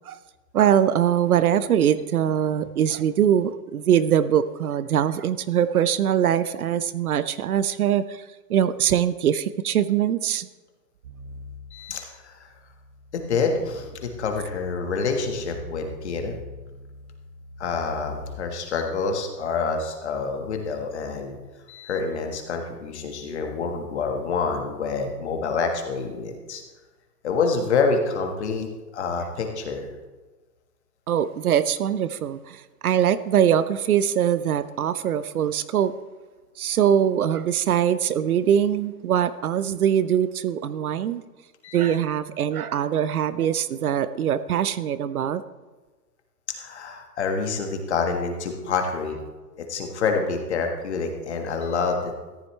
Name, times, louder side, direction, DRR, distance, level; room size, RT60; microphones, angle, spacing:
voice 1, 0.5-8.2 8.5-10.5 31.1-35.9 36.6-41.2 41.7-45.4, right 9 dB, 65° right, 14 dB, 0.7 m, -22 dB
sound 1, 11.0-18.3, left 1 dB, 35° right, 1.3 m, -42 dB
voice 2, 11.7-12.5 13.1-16.4 17.6-21.4 21.7-26.6 27.2-28.7 28.9-29.9 41.6-42.0 46.6-49.2 49.6-52.1, left 4 dB, 45° left, 4 dB, 1.6 m, -27 dB
14.0 x 11.0 x 3.2 m, 1.2 s
hypercardioid pair, 175°, 48 cm